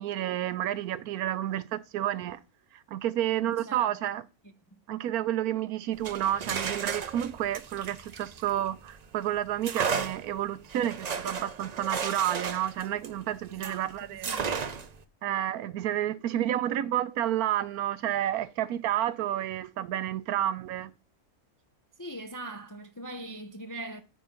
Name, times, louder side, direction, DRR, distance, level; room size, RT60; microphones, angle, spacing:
voice 1, 0.0-2.4 2.9-4.2 4.9-14.4 15.2-20.9, right 12 dB, 75° right, 1.1 m, -30 dB
voice 2, 3.4-4.0 4.4-4.8 13.5-14.5 22.0-24.0, right 2 dB, 25° left, 0.4 m, -42 dB
sound 1, 5.9-9.0 9.6-13.8 14.2-15.0, right 6 dB, 60° right, 0.4 m, -34 dB
9.4 x 3.7 x 7.0 m
omnidirectional pair, 1.6 m